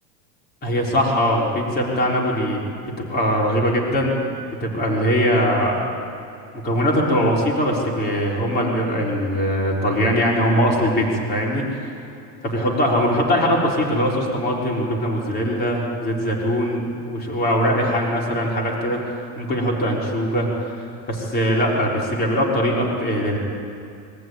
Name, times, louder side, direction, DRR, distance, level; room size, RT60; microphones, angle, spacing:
voice 1, 0.6-2.6 3.1-5.9 6.5-12.0 12.4-23.4, equal, 25° left, -3 dB, 3.8 m, -21 dB
23.0 x 15.0 x 9.2 m, 2.6 s
supercardioid pair, 145°, 41 cm